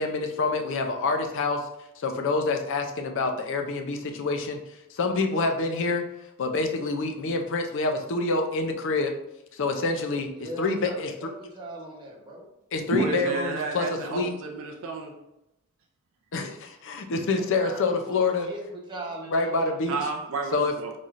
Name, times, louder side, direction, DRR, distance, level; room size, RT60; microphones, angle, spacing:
voice 1, 0.0-1.7 2.0-4.6 4.9-6.0 6.4-9.2 9.5-10.3 10.6-11.1 12.7-14.3 16.3-18.5 19.3-20.0 20.5-21.0, left 3 dB, 60° left, 5 dB, 0.5 m, -27 dB
voice 2, 5.2-5.6 10.3-12.5 17.4-19.7, right 1 dB, 20° right, -3 dB, 0.9 m, -40 dB
voice 3, 12.9-15.1 19.9-21.0, right 4 dB, 60° right, 1 dB, 0.4 m, -31 dB
4.0 x 3.2 x 2.4 m, 0.88 s
head